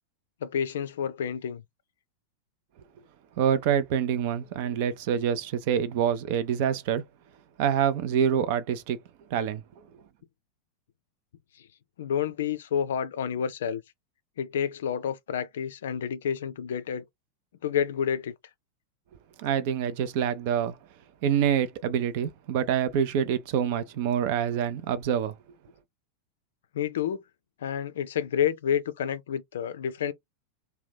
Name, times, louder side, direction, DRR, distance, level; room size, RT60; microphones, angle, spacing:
voice 1, 0.4-1.6 12.0-13.8 14.4-17.0 17.6-18.3 26.7-27.2 27.6-30.1, left 8 dB, 60° left, 0.4 m, -29 dB
voice 2, 3.4-7.0 7.6-9.0 9.3-9.6 19.4-20.8 21.2-25.3, right 8 dB, 50° right, 0.5 m, -26 dB
2.8 x 2.2 x 3.4 m
figure-of-eight pair, 90°, 0 cm